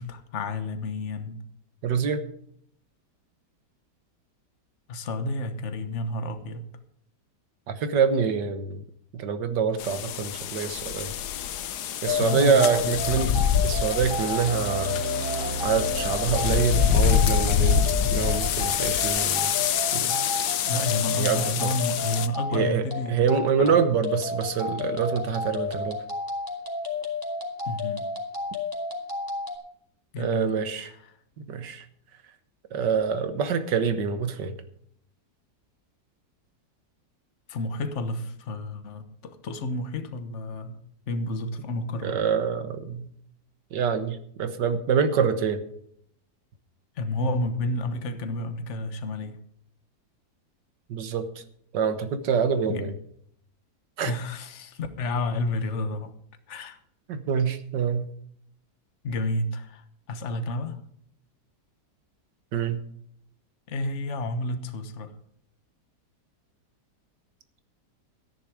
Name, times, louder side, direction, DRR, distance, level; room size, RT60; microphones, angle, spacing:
voice 1, 0.0-1.4 4.9-6.6 12.2-13.0 20.7-23.3 23.6-23.8 27.7-28.1 30.1-30.5 37.5-40.8 41.1-42.2 47.0-49.4 52.7-52.8 54.0-56.1 56.5-56.8 59.0-60.8 63.7-65.1, left 2 dB, 45° left, 9 dB, 1.4 m, -30 dB
voice 2, 1.8-2.2 7.7-8.8 9.1-11.1 12.0-13.3 13.6-15.0 15.6-19.5 19.9-20.2 21.1-21.7 22.5-26.0 30.2-30.9 31.5-31.8 32.7-34.6 42.0-43.1 43.7-45.6 50.9-51.3 51.7-52.9 54.0-54.1 57.1-58.1 62.5-62.8, right 6 dB, 85° right, 10 dB, 1.8 m, -26 dB
sound 1, 9.8-22.3, left 8 dB, 70° left, 1.3 m, -26 dB
sound 2, 12.0-29.6, left 3 dB, 10° left, 2.7 m, -32 dB
sound 3, 14.0-17.0, right 4 dB, 65° right, 1.6 m, -35 dB
13.5 x 10.5 x 4.9 m, 0.67 s
omnidirectional pair, 1.8 m